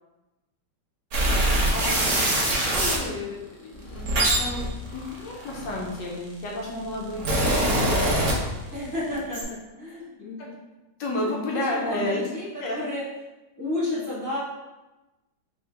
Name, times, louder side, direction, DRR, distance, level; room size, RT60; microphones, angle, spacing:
sound 1, 1.1-3.0 3.8-6.1 6.8-8.8 9.1-9.4, right 1 dB, 60° right, 1.1 m, -23 dB
voice 1, 1.7-8.2 10.0-10.1 10.4-10.5 11.0-12.3 12.6-12.8, left 1 dB, 70° left, -1 dB, 1.2 m, -32 dB
voice 2, 2.5-2.9 8.7-10.5 11.2-13.0 13.6-14.4, left 1 dB, 10° left, -11 dB, 1.1 m, -32 dB
4.6 x 2.7 x 3.3 m, 1.1 s
omnidirectional pair, 2.2 m